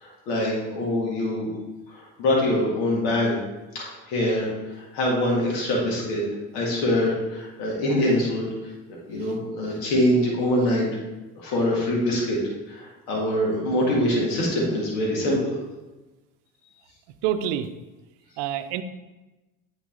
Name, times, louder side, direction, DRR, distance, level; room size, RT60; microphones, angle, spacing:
voice 1, 0.0-1.5 1.9-3.4 3.7-4.5 4.7-6.2 6.5-8.5 9.1-10.9 11.4-12.4 12.7-15.6, left 1 dB, 75° left, -3 dB, 2.0 m, -24 dB
voice 2, 17.2-17.7 18.4-18.8, right 10 dB, 65° right, 11 dB, 0.7 m, -26 dB
8.5 x 3.9 x 3.8 m, 1.1 s
hypercardioid pair, 60°, 45 cm